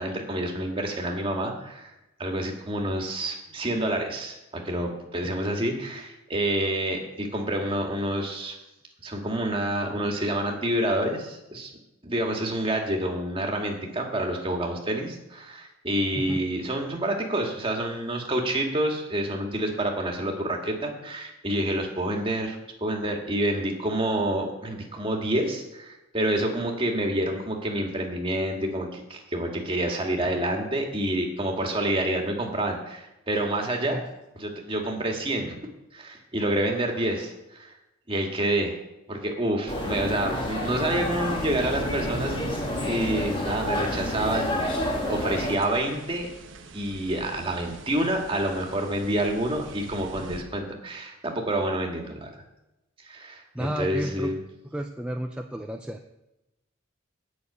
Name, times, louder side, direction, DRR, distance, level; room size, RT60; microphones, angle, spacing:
voice 1, 0.0-1.9 2.2-8.6 9.0-11.7 12.0-34.0 34.4-35.6 35.9-37.7 38.1-38.8 39.1-42.3 42.8-44.5 45.1-46.3 46.7-52.3 53.0-54.4, right 1 dB, 25° right, 1 dB, 1.9 m, -28 dB
sound 1, 39.7-45.6, left 1 dB, 25° left, 1.8 m, -29 dB
sound 2, 40.7-50.4, right 2 dB, 70° right, 1.1 m, -41 dB
voice 2, 53.5-54.3 54.7-56.1, right 1 dB, 5° right, 3 dB, 0.5 m, -32 dB
9.7 x 6.3 x 8.4 m, 0.95 s
head